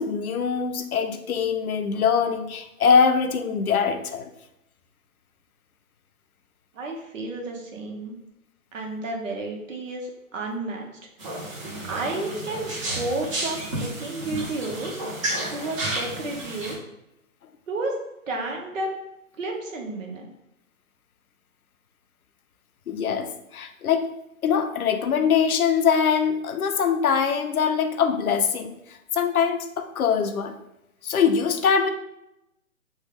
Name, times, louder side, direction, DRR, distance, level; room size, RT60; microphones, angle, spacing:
voice 1, 0.0-4.3 22.9-24.1 24.4-28.7 29.1-30.5 31.0-31.9, left 6 dB, 85° left, 8 dB, 0.6 m, -23 dB
voice 2, 6.7-8.2 8.7-10.9 11.9-16.8 17.7-18.0 18.3-18.9 19.4-20.3, right 2 dB, 60° right, 0 dB, 1.0 m, -32 dB
sound 1, 11.2-16.7, right 1 dB, 25° right, 0.8 m, -31 dB
3.2 x 2.3 x 3.3 m, 0.87 s
hypercardioid pair, 145°, 42 cm